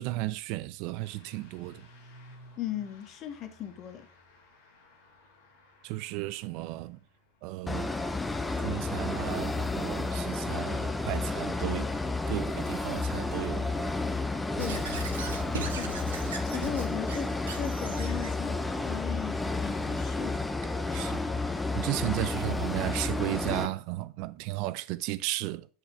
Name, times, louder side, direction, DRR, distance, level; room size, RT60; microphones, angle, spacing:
voice 1, 0.0-1.8 5.8-7.0 7.4-7.9 8.6-11.9 12.3-13.7 20.9-25.7, right 18 dB, 60° right, 0.5 m, -34 dB
Truck / Accelerating revving vroom, 1.0-8.9, equal, 70° left, 2.5 m, -57 dB
voice 2, 2.6-4.1 14.6-15.0 15.6-16.0 16.4-17.3 17.6-20.4, left 9 dB, 45° left, 1.4 m, -37 dB
sound 1, 7.7-23.7, left 3 dB, 10° left, 0.9 m, -31 dB
Squeak / Writing, 14.6-18.3, right 5 dB, 80° right, 1.2 m, -39 dB
6.7 x 6.0 x 3.1 m
hypercardioid pair, 85°, 0 cm